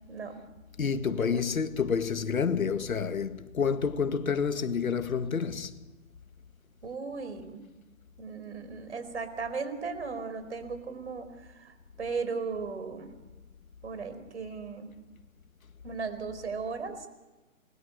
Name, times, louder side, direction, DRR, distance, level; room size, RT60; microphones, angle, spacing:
voice 1, 0.1-0.4 1.2-1.4 6.8-7.6 8.2-13.1 13.8-14.9 15.8-17.1, right 5 dB, 55° right, 4.8 m, -36 dB
voice 2, 0.8-5.7, left 6 dB, 85° left, 2.0 m, -29 dB
28.0 x 22.0 x 8.1 m
hypercardioid pair, 180°, 41 cm